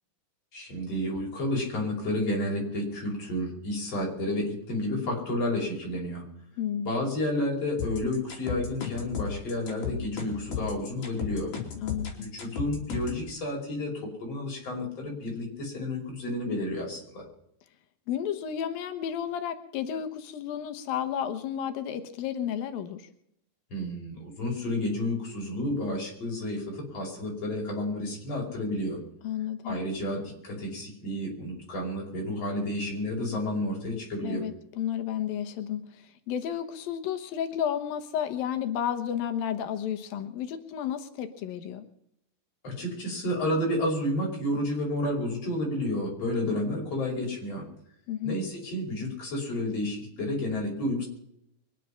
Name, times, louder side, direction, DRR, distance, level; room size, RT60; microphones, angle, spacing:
voice 1, 0.5-6.2 6.8-11.5 12.1-17.2 23.7-29.0 29.6-34.4 42.6-47.6 48.2-51.1, left 1 dB, 45° left, -1 dB, 6.3 m, -31 dB
voice 2, 6.6-6.9 11.8-12.3 18.1-23.1 29.2-29.8 34.2-35.8 36.3-41.8 46.4-46.6 48.1-48.4, left 9 dB, 90° left, 8 dB, 3.0 m, -32 dB
sound 1, 7.8-13.2, left 7 dB, 65° left, 4.4 m, -34 dB
24.0 x 10.0 x 5.8 m, 0.75 s
omnidirectional pair, 4.0 m